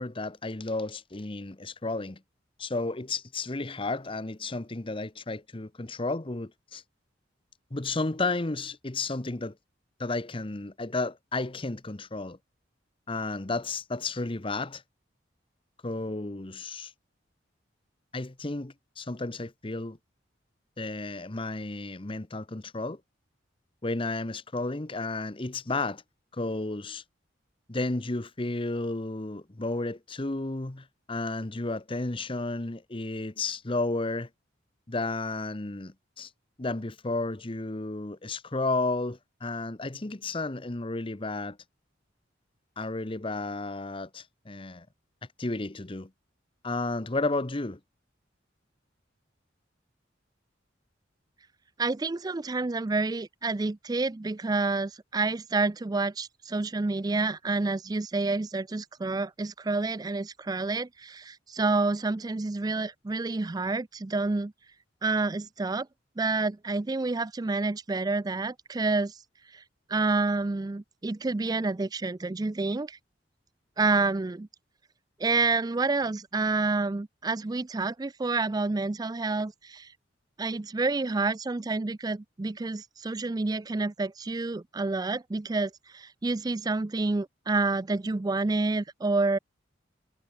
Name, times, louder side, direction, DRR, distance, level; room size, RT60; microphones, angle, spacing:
voice 1, 0.0-2.2 2.6-6.8 7.7-9.5 10.0-12.4 13.1-14.8 15.8-16.9 18.1-20.0 20.8-23.0 23.8-26.0 26.3-27.0 27.7-34.3 34.9-36.3 36.6-41.6 42.8-44.9 45.4-46.1 46.6-47.8, left 2 dB, 30° left, 0.9 m, -32 dB
voice 2, 51.8-64.5 65.0-65.9 66.2-69.2 69.5-69.6 69.9-73.0 73.8-74.5 75.2-79.9 80.4-89.4, right 3 dB, 20° right, 0.4 m, -28 dB
head